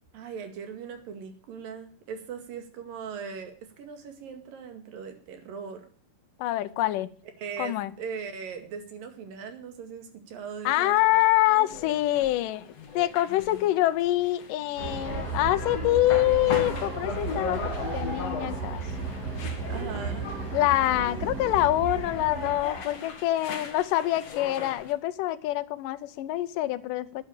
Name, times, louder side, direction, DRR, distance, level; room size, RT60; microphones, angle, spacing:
voice 1, 0.1-5.9 7.4-11.0 11.5-11.7 19.7-20.3, right 6 dB, 85° right, 7 dB, 3.9 m, -39 dB
voice 2, 6.4-7.1 7.6-7.9 10.7-12.7 13.0-18.8 20.5-27.2, left 16 dB, 80° left, 12 dB, 2.4 m, -25 dB
sound 1, 11.7-24.9, left 5 dB, 50° left, 3.0 m, -39 dB
Train, 14.8-22.9, right 4 dB, 60° right, 5.9 m, -34 dB
10.5 x 10.0 x 8.6 m, 0.43 s
omnidirectional pair, 3.9 m